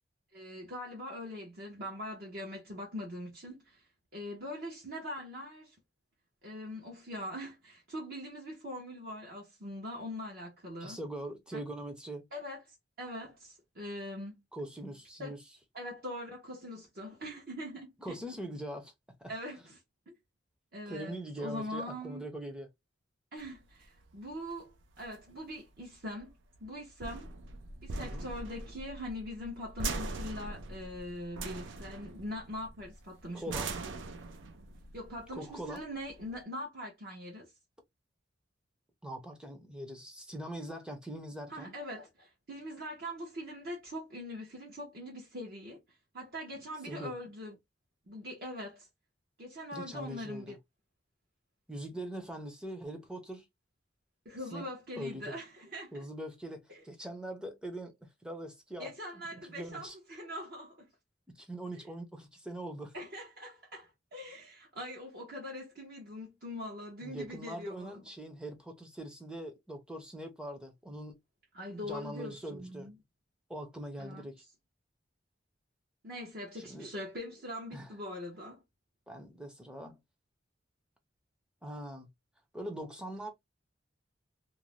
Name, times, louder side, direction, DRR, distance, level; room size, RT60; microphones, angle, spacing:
voice 1, 0.3-3.8 4.1-5.8 6.4-11.0 11.5-11.6 12.3-12.6 13.0-14.4 15.2-15.3 15.7-18.2 19.3-19.8 20.1-20.2 20.7-22.2 23.3-26.3 26.6-27.3 27.8-33.8 34.9-37.5 41.5-45.8 46.1-47.6 48.1-48.9 49.4-50.6 54.2-56.0 58.8-60.9 62.9-68.0 71.5-73.0 74.0-74.3 76.0-78.6, left 1 dB, 55° right, 0.9 m, -42 dB
voice 2, 10.8-12.3 14.5-15.4 18.0-18.9 19.2-19.3 20.9-22.7 27.9-28.3 33.3-33.7 35.3-35.8 39.0-41.7 46.8-47.1 49.7-50.6 51.7-53.5 54.5-54.7 55.0-55.4 55.9-60.0 61.3-62.9 67.0-71.2 71.8-72.9 73.5-74.4 76.6-76.9 77.7-77.9 79.1-80.0 81.6-82.1 82.5-83.3, right 1 dB, 5° right, 0.5 m, -42 dB
sound 1, 23.4-36.4, right 3 dB, 80° right, 0.5 m, -42 dB
2.6 x 2.1 x 3.0 m
head